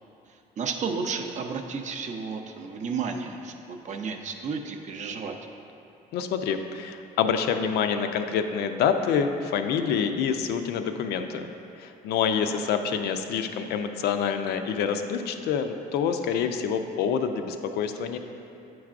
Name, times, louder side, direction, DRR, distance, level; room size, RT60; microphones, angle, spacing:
voice 1, 0.6-5.4, right 5 dB, 45° right, 4 dB, 0.5 m, -32 dB
voice 2, 6.1-11.5 11.8-18.2, left 7 dB, 75° left, 7 dB, 0.4 m, -27 dB
8.6 x 4.6 x 2.4 m, 2.7 s
cardioid pair, 110°, 17 cm